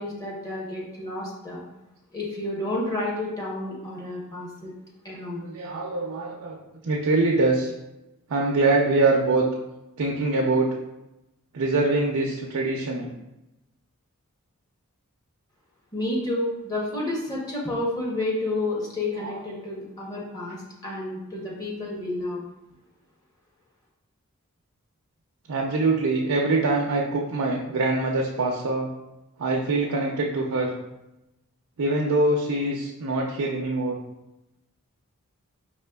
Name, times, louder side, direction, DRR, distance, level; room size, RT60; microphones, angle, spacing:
voice 1, 0.0-1.6 2.1-4.7 5.0-5.4 15.9-22.4, left 2 dB, 15° left, -4 dB, 0.7 m, -30 dB
voice 2, 5.4-6.6 6.8-7.7 8.3-9.5 10.0-10.8 11.5-13.1 19.2-19.4 25.5-28.9 29.4-30.7 31.8-34.0, right 2 dB, 80° right, -1 dB, 0.5 m, -24 dB
4.9 x 3.0 x 2.2 m, 0.94 s
head